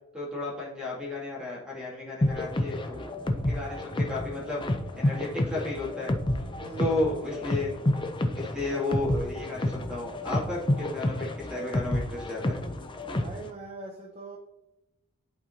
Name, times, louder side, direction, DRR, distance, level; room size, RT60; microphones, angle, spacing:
voice 1, 0.1-3.1 3.3-4.6 4.9-6.1 6.8-7.7 8.3-12.6, left 2 dB, 5° right, -5 dB, 2.3 m, -33 dB
sound 1, 2.2-13.5, left 1 dB, 20° left, 0.5 m, -30 dB
voice 2, 3.5-3.9 6.6-7.0 13.1-14.4, right 3 dB, 30° right, 0 dB, 0.7 m, -42 dB
11.0 x 4.3 x 2.8 m, 0.92 s
head